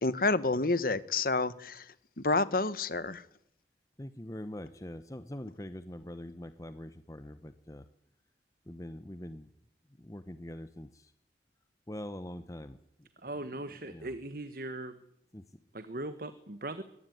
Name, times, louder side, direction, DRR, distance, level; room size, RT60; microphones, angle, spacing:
voice 1, 0.0-1.8 2.2-3.2, left 3 dB, 55° left, 16 dB, 1.2 m, -29 dB
voice 2, 4.0-7.8 8.7-9.5 10.0-11.1 11.9-12.8 13.9-14.1 15.3-15.4, left 1 dB, 20° left, 11 dB, 0.9 m, -43 dB
voice 3, 13.2-14.9 15.7-16.8, right 1 dB, 55° right, 11 dB, 1.3 m, -39 dB
22.0 x 19.0 x 9.4 m, 0.74 s
head